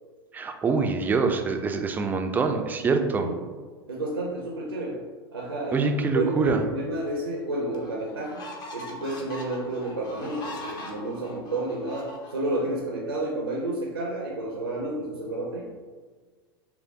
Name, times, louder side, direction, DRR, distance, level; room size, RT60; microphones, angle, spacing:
voice 1, 0.3-3.3 5.7-6.6, right 4 dB, 15° right, 5 dB, 0.3 m, -25 dB
voice 2, 2.9-3.4 3.9-5.0 5.3-8.5 8.7-15.7, right 1 dB, 90° right, -2 dB, 0.6 m, -31 dB
sound 1, 7.1-7.2 7.7-12.7, left 1 dB, 35° left, 0.7 m, -41 dB
5.7 x 2.0 x 2.7 m, 1.4 s
figure-of-eight pair, 90°, 13 cm